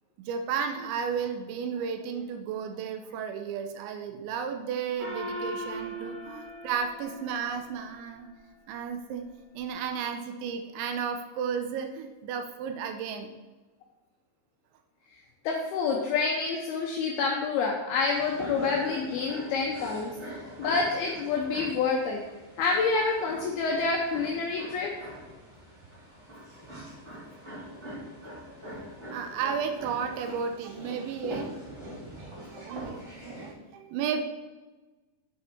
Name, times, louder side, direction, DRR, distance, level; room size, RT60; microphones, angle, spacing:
voice 1, 0.2-8.3 8.7-9.2 9.5-13.3 29.1-31.5 31.8-34.2, right 7 dB, 80° right, 7 dB, 3.0 m, -33 dB
Gong, 5.0-7.9, equal, 50° right, 2.3 m, -39 dB
voice 2, 15.4-22.2 22.6-24.9, left 4 dB, 80° left, -1 dB, 2.2 m, -28 dB
sound 1, 18.1-33.5, equal, 15° right, 2.6 m, -42 dB
8.5 x 7.2 x 4.4 m, 1.2 s
omnidirectional pair, 5.7 m